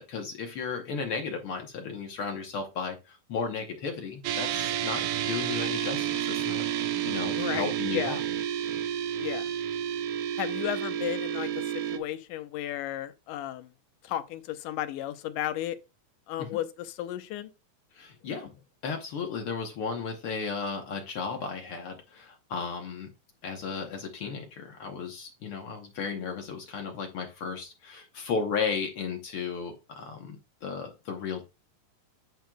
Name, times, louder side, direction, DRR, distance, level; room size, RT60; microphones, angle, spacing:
voice 1, 0.0-6.6 7.0-8.2 16.4-16.5 17.9-18.5 18.8-23.1 23.4-31.4, left 5 dB, 65° left, 1.4 m, -34 dB
sound 1, 4.2-12.0, right 10 dB, 90° right, 2.3 m, -30 dB
voice 2, 7.3-8.2 9.1-9.5 10.4-13.7 14.0-15.8 16.3-17.5, left 13 dB, 90° left, 2.3 m, -34 dB
9.1 x 6.5 x 2.2 m
omnidirectional pair, 3.6 m